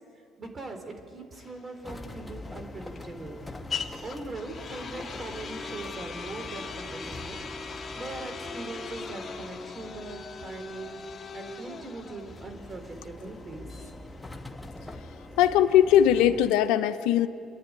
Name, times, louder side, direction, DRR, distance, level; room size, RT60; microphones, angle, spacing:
voice 1, 0.4-3.4 4.0-7.4 7.8-11.0 11.3-13.7, right 2 dB, 35° right, 5 dB, 4.0 m, -41 dB
sound 1, 1.3-15.1, left 5 dB, 35° left, 1.7 m, -40 dB
sound 2, 1.8-16.5, left 2 dB, 10° left, 1.3 m, -44 dB
voice 2, 15.3-17.3, left 10 dB, 85° left, 10 dB, 0.8 m, -20 dB
29.0 x 11.0 x 9.6 m, 2.3 s
supercardioid pair, 80°, 0 cm